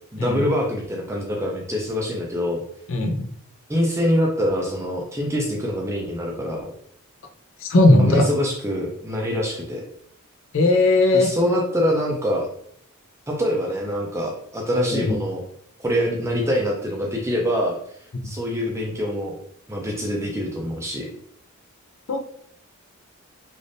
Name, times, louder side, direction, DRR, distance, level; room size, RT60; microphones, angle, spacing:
voice 1, 0.1-2.6 3.7-6.7 8.0-9.8 11.1-12.5 13.3-15.4 15.8-17.8 18.2-19.3 19.7-21.1, equal, 15° right, 0 dB, 0.5 m, -24 dB
voice 2, 7.6-8.3 10.5-11.3 14.7-15.2 22.1-22.2, left 2 dB, 60° left, 4 dB, 0.5 m, -17 dB
3.4 x 2.5 x 2.6 m, 0.66 s
head